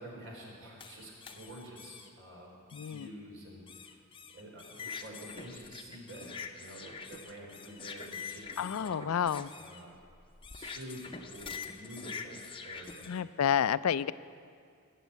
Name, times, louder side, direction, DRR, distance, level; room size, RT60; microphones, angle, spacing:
voice 1, 0.0-4.0 4.3-9.1 9.6-9.9 10.5-12.4 12.6-13.1, right 1 dB, 55° right, -1 dB, 3.8 m, -48 dB
sound 1, 0.8-2.1 2.7-3.1 3.7-13.2, left 5 dB, 25° left, 0.7 m, -45 dB
voice 2, 2.7-3.1 8.6-9.5 13.1-14.1, left 8 dB, 70° left, 16 dB, 0.4 m, -30 dB
19.0 x 7.4 x 8.1 m, 2.3 s
head